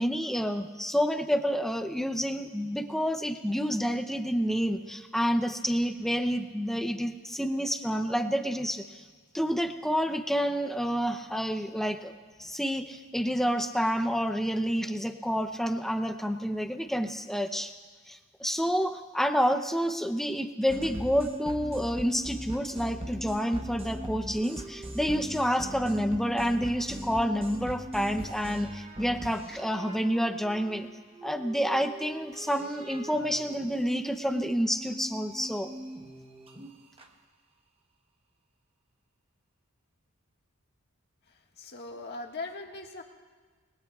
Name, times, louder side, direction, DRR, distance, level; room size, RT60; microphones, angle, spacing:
voice 1, 0.0-9.0 9.3-12.1 12.4-17.7 18.1-30.9 31.2-35.7, equal, ahead, 7 dB, 0.7 m, -29 dB
sound 1, 20.7-37.1, right 1 dB, 25° right, 1.0 m, -41 dB
voice 2, 41.3-43.0, left 3 dB, 50° left, 1 dB, 1.6 m, -40 dB
27.5 x 21.0 x 2.4 m, 1.5 s
head